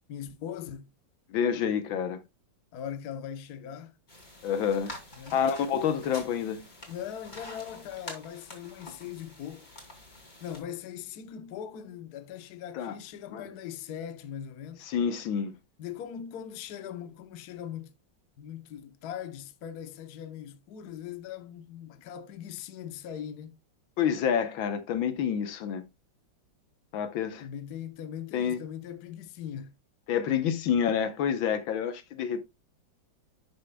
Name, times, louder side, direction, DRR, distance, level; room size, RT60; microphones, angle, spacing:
voice 1, 0.1-0.9 2.7-3.9 5.2-5.4 6.9-9.7 10.4-14.8 15.8-17.9 18.4-23.5 27.4-29.7, left 9 dB, 60° left, 1.3 m, -40 dB
voice 2, 1.3-2.2 4.4-4.9 5.3-6.6 12.7-13.0 13.3-13.5 14.9-15.6 24.0-25.8 26.9-27.5 28.3-28.6 30.1-32.4, left 8 dB, 80° left, 1.7 m, -28 dB
sound 1, 4.1-10.6, left 1 dB, 20° left, 2.7 m, -47 dB
11.0 x 6.6 x 2.2 m
omnidirectional pair, 2.1 m